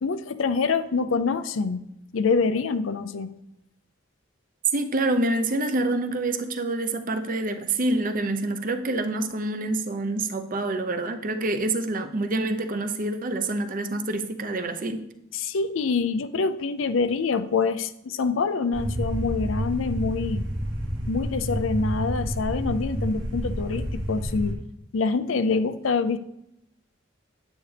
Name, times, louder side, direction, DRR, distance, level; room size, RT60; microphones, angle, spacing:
voice 1, 0.0-1.8 2.1-3.3 15.3-20.4 21.1-24.6 24.9-26.2, left 4 dB, 75° left, 11 dB, 0.5 m, -25 dB
voice 2, 4.7-15.0, right 2 dB, 45° right, 7 dB, 0.7 m, -27 dB
sound 1, 18.7-24.5, equal, 60° right, 2.0 m, -29 dB
9.4 x 8.3 x 3.4 m, 0.80 s
head